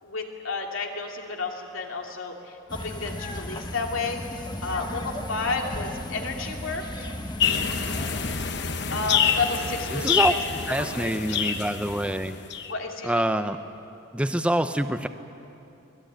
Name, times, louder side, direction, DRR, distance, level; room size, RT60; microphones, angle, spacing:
voice 1, 0.0-7.1 8.9-10.4 10.8-11.5 12.7-13.2, left 3 dB, 80° left, 1 dB, 2.8 m, -32 dB
sound 1, 2.7-8.4, left 1 dB, 20° left, 1.3 m, -35 dB
sound 2, 7.4-12.7, left 7 dB, 55° left, 1.1 m, -27 dB
voice 2, 9.9-10.3 10.7-12.3 13.0-13.6 14.1-15.1, right 1 dB, 5° right, 9 dB, 0.7 m, -25 dB
24.5 x 20.0 x 9.1 m, 2.7 s
head